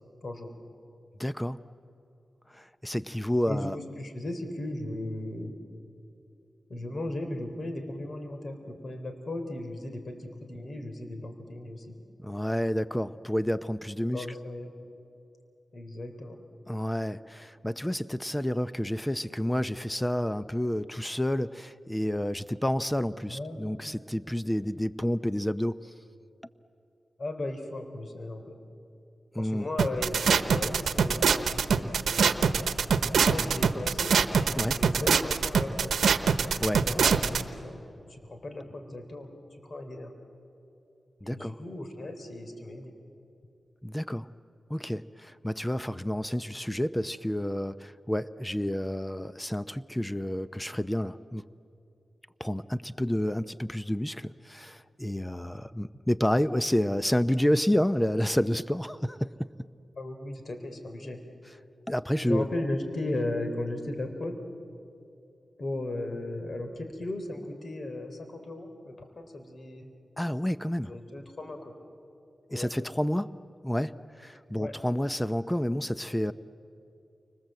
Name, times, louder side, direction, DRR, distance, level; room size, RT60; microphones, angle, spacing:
voice 1, 1.2-1.6 2.5-3.8 12.2-14.3 16.7-25.9 29.3-29.7 34.6-34.8 36.6-36.8 41.2-41.6 43.8-44.3 44.7-51.5 52.4-59.5 61.9-62.5 70.2-70.9 72.5-73.3 73.6-76.3, equal, 10° left, 13 dB, 0.8 m, -29 dB
voice 2, 3.5-5.5 6.7-12.0 14.1-14.7 15.7-16.4 23.3-24.0 27.2-28.6 29.4-32.3 33.3-34.1 34.6-35.9 36.8-37.8 38.1-40.1 41.2-42.9 60.0-61.2 62.2-64.3 65.6-69.9 70.8-71.8 72.5-72.7 74.6-74.7, left 1 dB, 60° left, 6 dB, 3.9 m, -36 dB
sound 1, 29.8-37.4, right 6 dB, 90° right, 1.0 m, -23 dB
29.5 x 25.5 x 7.8 m, 2.7 s
cardioid pair, 50°, 0 cm